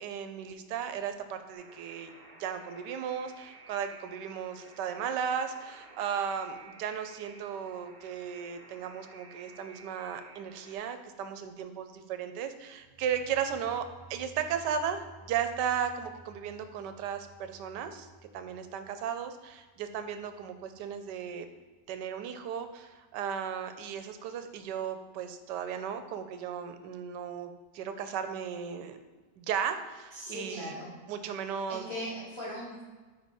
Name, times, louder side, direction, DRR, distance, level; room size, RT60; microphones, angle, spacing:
voice 1, 0.0-2.1 2.4-18.1 18.3-21.5 21.9-29.0 29.4-30.8 31.1-31.9, right 8 dB, 80° right, 9 dB, 1.2 m, -35 dB
Alarm, 1.5-10.8, right 3 dB, 35° right, 0.8 m, -54 dB
the entrance to hell, 12.7-21.7, right 2 dB, 55° right, 1.1 m, -56 dB
voice 2, 30.1-31.0 31.7-32.8, equal, 20° left, -7 dB, 1.1 m, -39 dB
5.1 x 4.6 x 4.2 m, 1.3 s
omnidirectional pair, 1.8 m